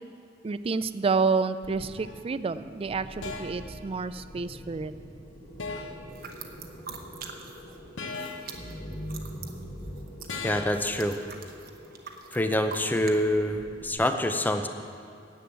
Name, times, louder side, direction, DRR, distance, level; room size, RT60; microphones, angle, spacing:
voice 1, 0.4-4.9, right 4 dB, 30° right, 14 dB, 0.3 m, -29 dB
sound 1, 1.6-13.9, equal, 45° left, 2.6 m, -44 dB
sound 2, 2.0-2.2 3.2-3.7 5.6-6.1 8.0-8.6 10.3-10.9, left 4 dB, 75° left, 0.9 m, -37 dB
sound 3, 6.1-13.2, right 6 dB, 55° right, 1.0 m, -44 dB
voice 2, 10.4-11.2 12.3-14.7, left 1 dB, 10° left, 7 dB, 0.6 m, -26 dB
10.0 x 7.9 x 8.8 m, 2.3 s
head